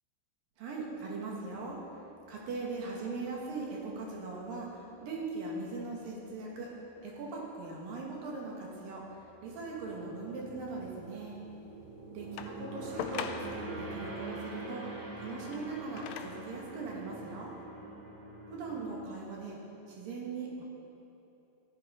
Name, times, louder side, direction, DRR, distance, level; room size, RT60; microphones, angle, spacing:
voice 1, 0.6-1.8 2.3-6.7 7.0-11.4 12.1-17.6 18.5-19.6 19.9-20.6, right 3 dB, 80° right, -3 dB, 3.6 m, -40 dB
sound 1, 1.4-1.5 1.9-2.0 9.0-19.1, right 2 dB, 55° right, 2.8 m, -45 dB
sound 2, 12.4-13.8 15.3-16.5 17.4-17.5, left 8 dB, 90° left, 2.3 m, -41 dB
13.5 x 11.0 x 5.2 m, 2.9 s
omnidirectional pair, 4.0 m